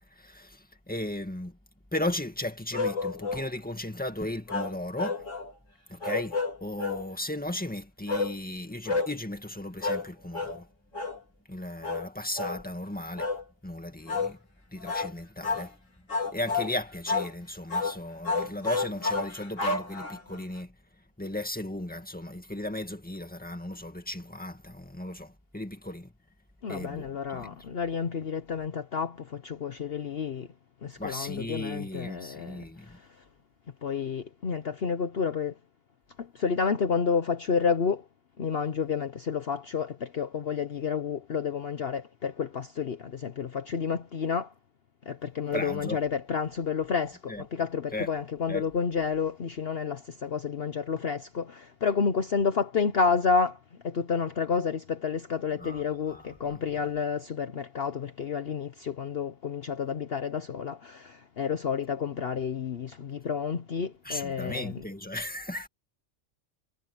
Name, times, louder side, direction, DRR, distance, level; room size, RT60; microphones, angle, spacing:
voice 1, 0.2-0.6 0.9-1.5 1.9-5.2 5.9-10.7 11.5-13.3 13.6-14.4 14.7-15.7 16.3-20.7 21.2-26.1 26.7-27.5 31.0-32.9 45.5-46.0 47.3-47.4 47.9-48.1 48.5-48.6 55.6-55.8 56.1-56.2 64.1-65.7, left 1 dB, 5° left, 2.0 m, -36 dB
sound 1, 2.7-3.5 4.5-5.5 6.0-7.0 8.1-8.3 8.9-9.1 9.8-10.1 10.3-10.6 10.9-11.2 11.8-12.1 12.4-12.6 13.2-13.4 14.1-14.3 14.8-15.1 15.4-15.7 16.1-16.7 17.1-17.3 17.7-18.0 18.2-20.4, left 3 dB, 75° left, 3.7 m, -30 dB
voice 2, 26.6-30.5 30.8-33.0 33.8-35.5 36.2-38.0 38.4-44.5 45.1-53.6 53.8-64.8, left 6 dB, 50° left, 1.1 m, -30 dB
omnidirectional pair, 1.3 m